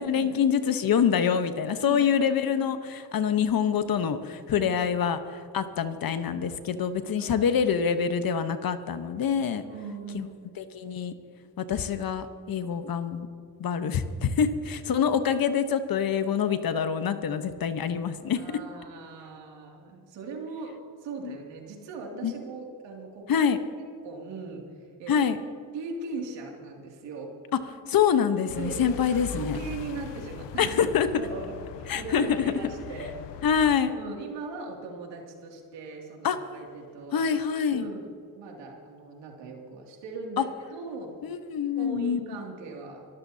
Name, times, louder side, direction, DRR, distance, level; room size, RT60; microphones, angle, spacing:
voice 1, 0.0-9.6 10.1-10.3 10.6-11.1 11.6-13.3 13.6-18.4 21.2-21.4 22.2-22.3 23.3-23.6 25.1-25.4 27.9-29.6 30.6-31.1 31.9-32.5 33.4-34.0 36.2-36.4 37.1-37.9 40.4-40.5 41.2-42.2, left 7 dB, 55° left, 10 dB, 1.1 m, -26 dB
voice 2, 7.2-7.5 9.6-10.3 18.4-23.3 23.8-25.2 25.7-27.3 28.6-30.8 31.2-31.5 31.8-33.1 33.9-37.2 37.7-41.2 41.8-43.1, right 4 dB, 80° right, 1 dB, 2.7 m, -39 dB
sound 1, 28.5-33.8, left 9 dB, 80° left, 0.8 m, -41 dB
27.5 x 13.5 x 2.8 m, 2.4 s
supercardioid pair, 65°, 42 cm